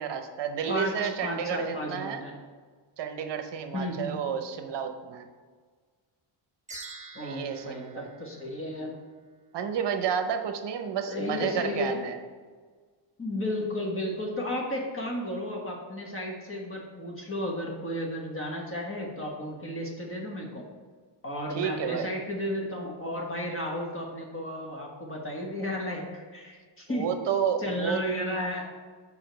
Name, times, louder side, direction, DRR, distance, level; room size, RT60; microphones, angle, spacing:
voice 1, 0.0-2.2 3.0-5.3 7.2-8.1 9.5-12.2 21.5-22.1 26.9-28.0, right 7 dB, 55° right, 7 dB, 0.8 m, -31 dB
voice 2, 0.7-2.3 3.7-4.2 7.1-7.8 8.2-8.9 11.1-12.1 13.2-20.6 21.2-27.1 27.6-28.6, left 1 dB, 25° left, -1 dB, 1.3 m, -33 dB
sound 1, 6.7-9.1, right 3 dB, 15° right, 0.4 m, -46 dB
5.5 x 5.0 x 6.1 m, 1.5 s
wide cardioid pair, 170°, 49 cm